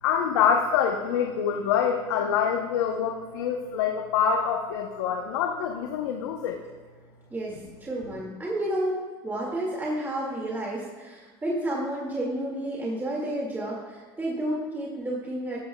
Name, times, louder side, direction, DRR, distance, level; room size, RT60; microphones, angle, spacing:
voice 1, 0.0-6.6, left 7 dB, 85° left, 3 dB, 0.9 m, -25 dB
voice 2, 7.3-9.0 9.2-15.6, right 1 dB, 15° right, -4 dB, 2.1 m, -31 dB
15.0 x 13.5 x 2.3 m, 1.5 s
supercardioid pair, 105°, 14 cm